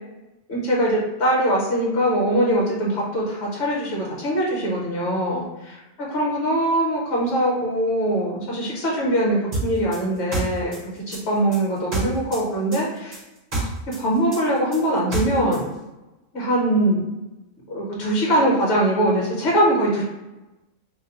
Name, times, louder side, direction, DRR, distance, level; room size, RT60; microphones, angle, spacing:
voice 1, 0.5-10.8 11.1-13.2 13.5-13.7 13.9-15.7 16.3-17.1 17.7-20.0, right 1 dB, 55° left, -4 dB, 1.4 m, -22 dB
sound 1, 9.5-12.4 12.7-15.6, right 2 dB, 35° right, 0.9 m, -28 dB
2.9 x 2.2 x 4.1 m, 1.0 s
omnidirectional pair, 1.4 m